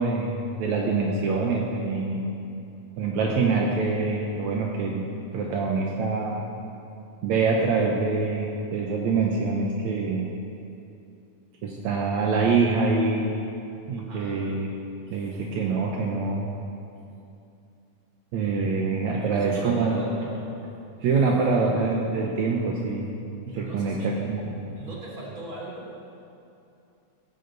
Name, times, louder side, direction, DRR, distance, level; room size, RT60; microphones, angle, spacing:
voice 1, 0.0-2.3 3.0-5.1 5.3-6.4 7.2-10.3 11.6-13.3 13.9-14.7 15.1-16.5 18.3-20.0 21.0-23.1 23.5-24.6, right 4 dB, 75° right, -1 dB, 2.3 m, -25 dB
voice 2, 14.1-14.4 18.5-18.7 19.1-20.5 23.5-24.2 24.8-25.9, right 2 dB, 30° right, -4 dB, 3.2 m, -38 dB
16.0 x 15.0 x 4.0 m, 2.7 s
omnidirectional pair, 3.4 m